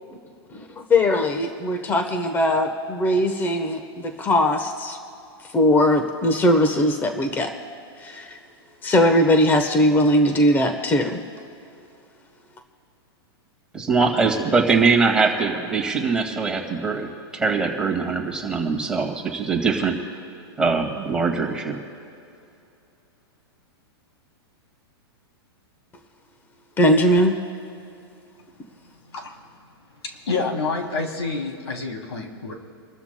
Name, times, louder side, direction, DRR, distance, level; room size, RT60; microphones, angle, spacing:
voice 1, 0.5-5.0 5.5-7.5 8.0-8.4 8.8-11.2 26.8-27.4, left 1 dB, 15° left, 6 dB, 1.0 m, -20 dB
voice 2, 13.7-20.0 20.6-21.8, right 4 dB, 5° right, 0 dB, 1.9 m, -22 dB
voice 3, 30.0-32.5, left 3 dB, 90° left, 2 dB, 3.0 m, -28 dB
30.0 x 13.0 x 2.2 m, 2.6 s
hypercardioid pair, 140°, 14 cm